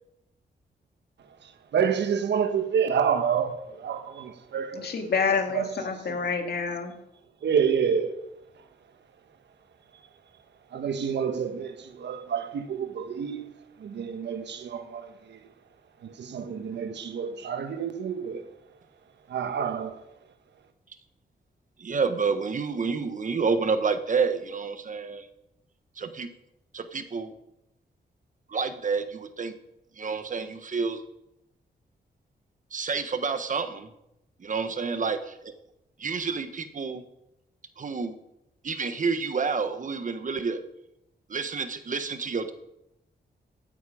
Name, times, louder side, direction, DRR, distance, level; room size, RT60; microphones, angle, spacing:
voice 1, 1.4-5.1 5.5-5.7 6.1-6.2 7.4-8.2 10.7-13.4 13.8-15.4 16.0-18.4 19.3-20.0, right 7 dB, 85° right, 1.3 m, -28 dB
voice 2, 4.7-7.0, left 5 dB, 65° left, 2.2 m, -28 dB
voice 3, 21.8-25.3 26.0-26.3 26.7-27.3 28.5-29.5 30.0-31.0 32.7-33.9 34.4-35.5 36.0-37.0 37.8-38.1 38.6-40.6 41.3-42.5, right 5 dB, 45° right, 1.4 m, -29 dB
16.5 x 9.2 x 5.1 m
cardioid pair, 95°, 18 cm